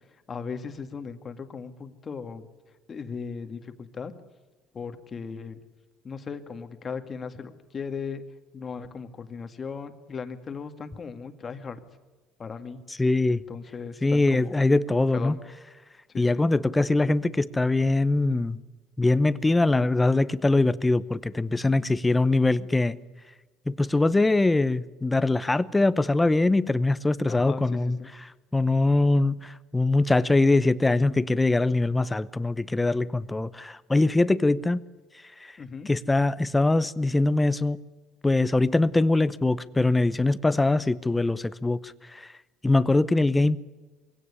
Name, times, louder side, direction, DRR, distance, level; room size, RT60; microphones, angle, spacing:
voice 1, 0.3-2.5 2.9-4.1 4.7-5.6 6.0-8.2 8.5-11.8 12.4-12.8 13.3-14.6 15.1-15.4 16.1-16.5 27.3-28.1 35.6-35.9, left 5 dB, 30° left, 1.9 m, -37 dB
voice 2, 13.0-13.4 14.0-15.4 16.2-18.6 19.0-23.0 23.7-28.0 28.5-34.8 35.4-35.5 35.9-37.8 38.2-42.3 42.6-43.6, left 2 dB, 10° left, 0.8 m, -22 dB
22.5 x 17.0 x 9.9 m
cardioid pair, 115°, 0 cm